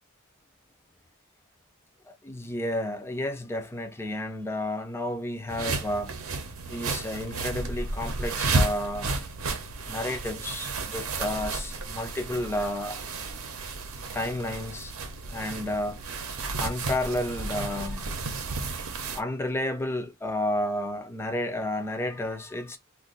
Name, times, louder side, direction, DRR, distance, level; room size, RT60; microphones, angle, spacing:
voice 1, 2.1-6.2 6.7-9.1 9.9-13.1 14.1-14.9 15.3-16.0 16.6-18.0 19.1-22.8, left 1 dB, 10° left, 0.3 m, -31 dB
sound 1, 5.5-19.2, right 3 dB, 75° right, 0.7 m, -32 dB
2.5 x 2.3 x 3.8 m
head